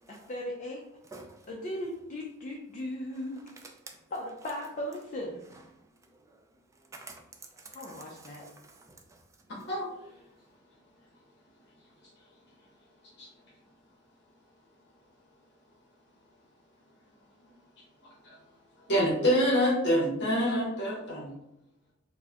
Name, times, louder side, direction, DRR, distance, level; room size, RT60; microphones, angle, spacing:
voice 1, 0.1-0.8 1.5-3.5 4.1-5.4 7.7-8.5, left 1 dB, 40° left, -1 dB, 0.5 m, -37 dB
voice 2, 3.6-4.0 6.9-7.2 7.6-9.2 9.6-9.7, right 3 dB, 15° right, 2 dB, 0.4 m, -49 dB
voice 3, 18.9-21.3, equal, 55° left, -4 dB, 1.0 m, -26 dB
4.4 x 2.1 x 2.8 m, 0.83 s
head